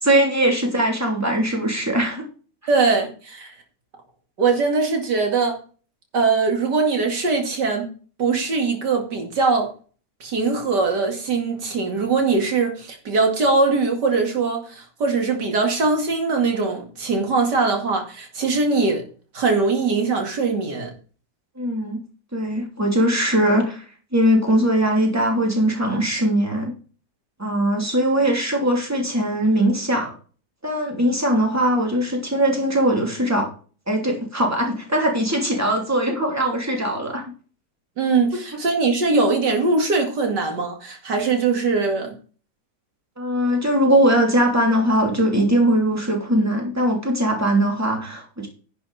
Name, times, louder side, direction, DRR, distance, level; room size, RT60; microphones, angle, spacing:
voice 1, 0.0-2.2 21.6-22.0 22.3-23.8 24.1-26.7 27.4-30.1 30.6-33.5 33.9-37.2 43.2-48.5, right 1 dB, 10° right, 3.1 m, -20 dB
voice 2, 2.7-3.5 4.4-5.6 6.1-7.9 8.2-9.7 10.2-19.0 19.3-20.9 38.0-42.1, right 4 dB, 80° right, 2.9 m, -21 dB
10.5 x 7.8 x 4.2 m
omnidirectional pair, 1.8 m